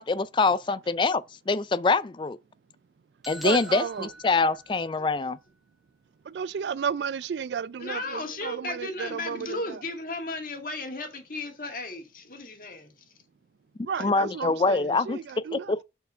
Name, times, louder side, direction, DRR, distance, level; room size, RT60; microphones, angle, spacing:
voice 1, 0.0-2.4 3.3-5.4 14.0-15.8, left 3 dB, 25° left, 0.3 m, -25 dB
sound 1, 3.2-5.2, right 1 dB, ahead, 0.9 m, -45 dB
voice 2, 3.4-4.1 6.3-9.8 13.9-15.7, right 6 dB, 80° right, 0.3 m, -33 dB
voice 3, 7.8-12.9, left 2 dB, 50° left, 1.7 m, -35 dB
6.8 x 4.6 x 5.4 m
head